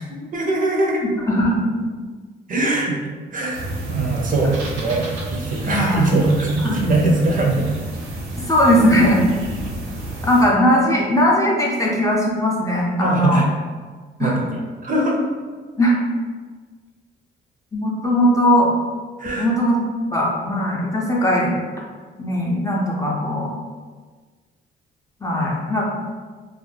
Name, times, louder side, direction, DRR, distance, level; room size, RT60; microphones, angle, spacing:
voice 1, 0.1-1.0 2.5-7.7 13.0-13.5 14.2-15.3 19.2-19.5, right 2 dB, 45° right, -1 dB, 0.5 m, -22 dB
voice 2, 1.3-1.8 2.7-2.8 5.7-6.1 6.6-6.8 8.4-9.3 10.2-13.5 14.2-14.4 15.8-16.0 17.7-18.7 19.4-19.8 20.1-21.6 22.2-23.5 25.2-25.9, equal, 15° left, -3 dB, 0.5 m, -19 dB
sound 1, 3.5-10.4, right 1 dB, 80° right, 0.8 m, -30 dB
2.4 x 2.1 x 3.2 m, 1.4 s
cardioid pair, 90°, 20 cm